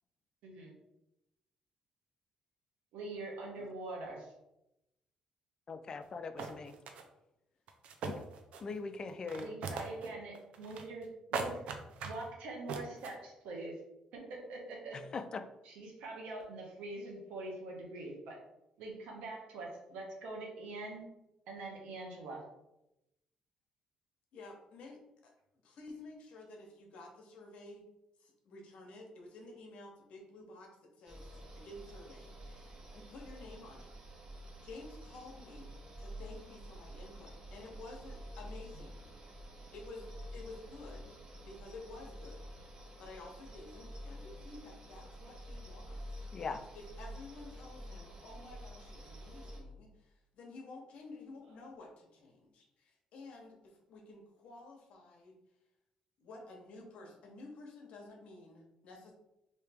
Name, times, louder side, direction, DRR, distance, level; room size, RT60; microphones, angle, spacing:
voice 1, 0.4-0.7 2.9-4.3 9.4-11.6 12.0-13.8 14.1-15.0 15.6-18.4 18.8-21.1 21.5-22.4, right 2 dB, 90° right, 0 dB, 1.0 m, -44 dB
voice 2, 5.7-6.7 8.0-8.2 8.6-9.5 14.9-15.4 46.3-46.6, left 4 dB, 35° left, 10 dB, 0.3 m, -41 dB
sound 1, 6.0-6.1 6.4-7.0 7.7-8.8 9.1-10.1 10.3-11.0 11.3-12.3 12.7-13.1, right 5 dB, 70° right, 0.5 m, -39 dB
voice 3, 24.3-25.3 25.6-27.8 28.2-33.9 34.6-39.1 39.7-46.3 46.7-55.4 56.2-59.1, left 2 dB, 70° left, 1 dB, 0.8 m, -52 dB
sound 2, 31.0-49.6, equal, 40° right, 0.8 m, -49 dB
3.1 x 2.8 x 3.4 m, 0.89 s
cardioid pair, 110°, 2 cm